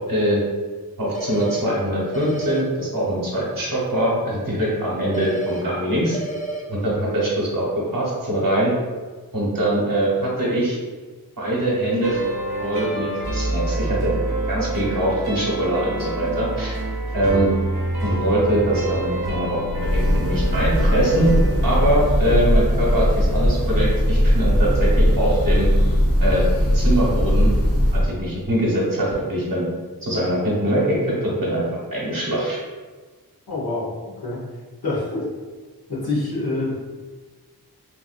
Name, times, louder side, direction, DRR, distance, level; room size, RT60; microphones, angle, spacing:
voice 1, 0.1-0.4 1.0-6.2 6.7-7.6 7.9-8.7 9.3-10.8 11.4-12.2 12.6-14.1 14.5-16.8 17.1-17.5 18.0-21.3 21.6-25.7 26.2-26.4 26.7-27.5 27.9-29.7 30.0-31.6 31.9-32.6, right 1 dB, 60° right, -6 dB, 1.1 m, -22 dB
sound 1, 1.1-1.6 2.1-2.6 5.1-5.6 6.1-6.6, right 2 dB, 25° left, 0.3 m, -30 dB
sound 2, 12.0-23.1, right 1 dB, 75° right, 0.8 m, -28 dB
Breathing / Bird, 19.6-28.2, equal, 40° left, 0.9 m, -19 dB
voice 2, 33.5-33.9 34.2-34.4 34.8-35.3 35.9-36.7, left 2 dB, 70° left, -7 dB, 1.1 m, -25 dB
3.3 x 2.6 x 2.4 m, 1.4 s
wide cardioid pair, 55°, 38 cm